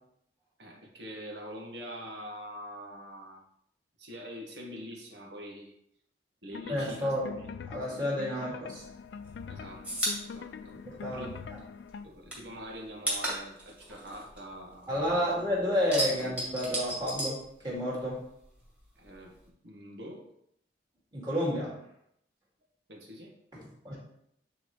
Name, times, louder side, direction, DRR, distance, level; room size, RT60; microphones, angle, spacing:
voice 1, 0.6-3.4 4.0-5.7 6.4-7.5 9.5-9.8 10.2-11.4 12.0-15.3 19.0-19.3 19.6-20.2 22.9-23.3, equal, 80° right, 0 dB, 1.5 m, -44 dB
sound 1, 6.5-12.0, left 6 dB, 80° left, 0.3 m, -43 dB
voice 2, 6.7-7.4 7.7-8.8 10.8-11.6 14.9-18.2 21.1-21.8 23.5-24.0, equal, 25° right, -5 dB, 2.2 m, -31 dB
sound 2, 8.8-11.6 11.9-15.2 15.5-18.1 18.4-19.5, right 1 dB, 5° right, 1.8 m, -35 dB
8.8 x 4.1 x 3.1 m, 0.74 s
head